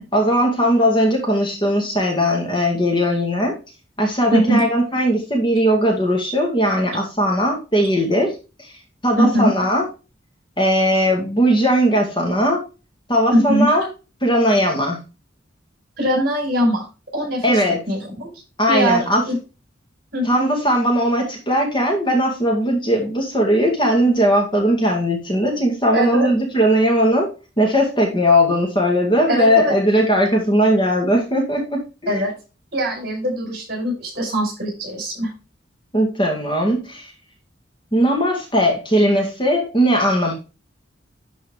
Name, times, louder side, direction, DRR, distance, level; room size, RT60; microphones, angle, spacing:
voice 1, 0.1-3.5 4.0-8.3 9.0-9.9 10.6-12.6 13.1-13.9 14.2-15.0 17.4-17.8 18.6-19.2 20.2-27.3 27.6-32.2 35.9-37.1 37.9-40.3, equal, 25° left, 1 dB, 2.2 m, -18 dB
voice 2, 4.3-4.6 7.8-7.9 9.2-9.5 13.3-13.7 16.0-16.8 17.1-18.3 18.7-19.4 20.1-20.4 25.9-26.3 29.3-29.8 32.1-32.3 32.7-35.3, equal, 50° right, 0 dB, 5.0 m, -21 dB
11.5 x 4.6 x 3.6 m, 0.30 s
head